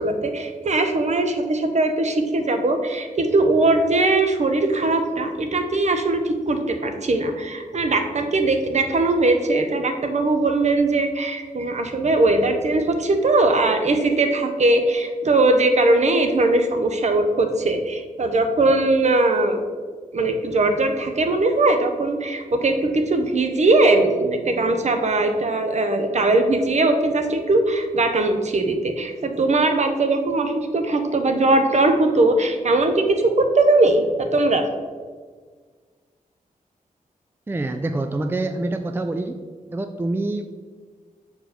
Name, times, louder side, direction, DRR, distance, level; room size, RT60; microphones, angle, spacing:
voice 1, 0.0-19.6 20.1-34.6, right 2 dB, 55° right, 6 dB, 0.8 m, -20 dB
voice 2, 37.5-39.4 39.7-40.5, right 2 dB, 15° right, 7 dB, 0.3 m, -26 dB
6.6 x 4.6 x 4.2 m, 1.5 s
wide cardioid pair, 90°, 15 cm